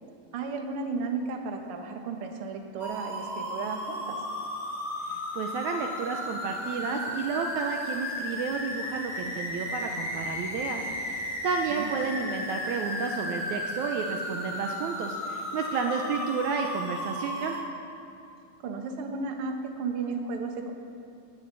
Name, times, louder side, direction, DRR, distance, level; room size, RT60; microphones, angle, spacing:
voice 1, 0.3-4.2 11.7-11.9 18.6-20.7, right 4 dB, 60° right, 3 dB, 1.5 m, -34 dB
sound 1, 2.8-17.6, left 1 dB, 15° left, 1.9 m, -34 dB
voice 2, 5.0-17.6, right 5 dB, 85° right, 2 dB, 1.7 m, -31 dB
20.0 x 15.0 x 4.1 m, 2.5 s
omnidirectional pair, 4.4 m